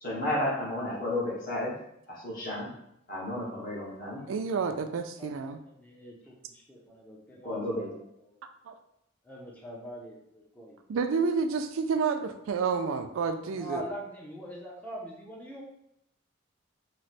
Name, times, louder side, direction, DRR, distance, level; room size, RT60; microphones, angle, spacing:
voice 1, 0.0-1.7 2.1-2.7 3.1-4.2 7.4-7.9, left 1 dB, 45° left, -5 dB, 1.1 m, -32 dB
voice 2, 3.4-3.8 4.1-7.6 7.9-8.4 9.2-11.0 13.5-15.6, equal, 5° left, -3 dB, 0.5 m, -44 dB
voice 3, 4.3-5.6 8.7-8.8 10.9-13.8, right 5 dB, 85° right, 8 dB, 0.3 m, -29 dB
3.1 x 2.1 x 4.0 m, 0.77 s
head